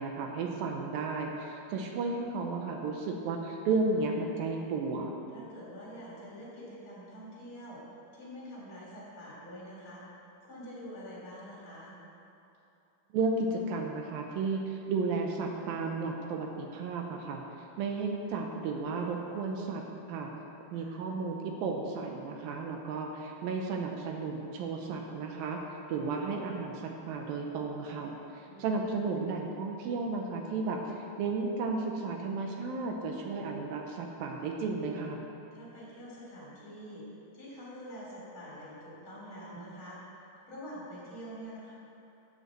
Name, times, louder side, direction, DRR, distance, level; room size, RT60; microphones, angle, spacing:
voice 1, 0.0-5.2 13.1-17.4 17.8-19.8 20.1-20.3 20.7-28.1 28.6-35.2, right 4 dB, 80° right, 2 dB, 2.6 m, -33 dB
voice 2, 5.3-7.8 8.1-11.9 20.7-21.0 28.4-28.8 35.5-37.0 37.3-40.0 40.4-41.7, equal, 35° left, -6 dB, 3.4 m, -46 dB
9.3 x 8.0 x 7.5 m, 2.8 s
omnidirectional pair, 4.3 m